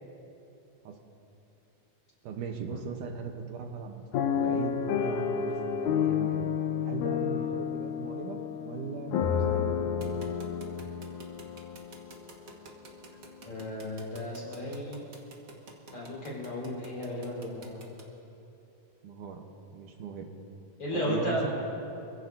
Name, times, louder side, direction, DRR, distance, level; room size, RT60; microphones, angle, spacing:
voice 1, 2.2-4.0 4.3-6.5 6.8-10.0 19.0-20.3 20.9-21.5, right 6 dB, 80° right, 4 dB, 2.5 m, -39 dB
sound 1, 4.1-12.2 12.8-12.9 13.2-13.5, left 8 dB, 75° left, 2.2 m, -30 dB
sound 2, 10.0-18.0, right 4 dB, 45° right, 1.1 m, -49 dB
voice 2, 13.5-15.1 15.9-17.8 20.8-21.5, left 1 dB, 45° left, -6 dB, 5.6 m, -34 dB
27.0 x 16.0 x 2.7 m, 2.9 s
omnidirectional pair, 3.6 m